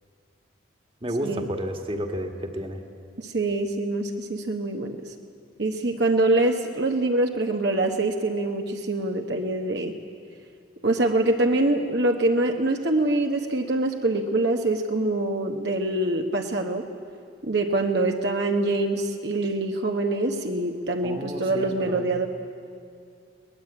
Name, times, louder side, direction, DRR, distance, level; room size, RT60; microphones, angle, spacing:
voice 1, 1.0-2.8 21.0-22.1, equal, 25° right, 4 dB, 1.7 m, -31 dB
voice 2, 3.2-5.1 5.6-9.9 10.8-16.8 17.4-22.3, right 2 dB, 60° right, 3 dB, 1.2 m, -24 dB
23.0 x 19.5 x 8.8 m, 2.4 s
head